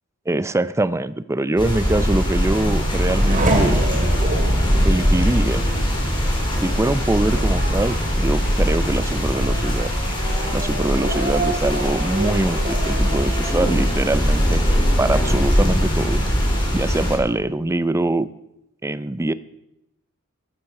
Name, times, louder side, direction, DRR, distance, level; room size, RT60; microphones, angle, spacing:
voice 1, 0.3-3.8 4.8-5.7 6.6-9.9 10.5-14.6 15.0-16.2 16.7-18.3 18.8-19.3, right 2 dB, 15° right, 15 dB, 0.5 m, -23 dB
sound 1, 1.6-17.2, equal, 25° left, 3.7 m, -21 dB
Race car auto racing / Accelerating revving vroom, 2.1-15.2 15.6-16.3, right 2 dB, 40° right, 2.5 m, -30 dB
14.0 x 13.0 x 4.9 m, 0.85 s
head